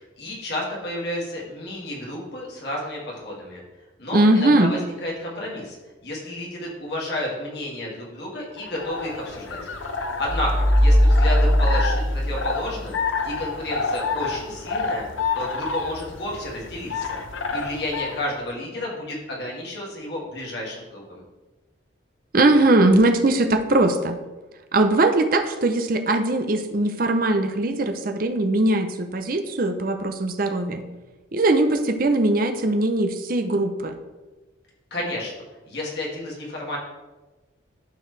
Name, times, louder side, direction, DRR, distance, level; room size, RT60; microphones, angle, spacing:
voice 1, 0.0-3.6 4.0-5.8 6.0-9.6 9.9-13.0 13.3-15.1 15.3-17.2 17.5-21.2 34.9-35.3 35.7-36.8, left 1 dB, 55° left, -4 dB, 2.2 m, -31 dB
voice 2, 4.1-4.7 22.3-24.2 24.7-30.8 31.3-34.0, right 2 dB, 45° right, 7 dB, 0.6 m, -20 dB
sound 1, 8.6-18.3, left 4 dB, 80° left, 0.7 m, -29 dB
sound 2, 10.3-13.1, equal, 15° left, 2.4 m, -19 dB
12.0 x 4.6 x 3.3 m, 1.2 s
head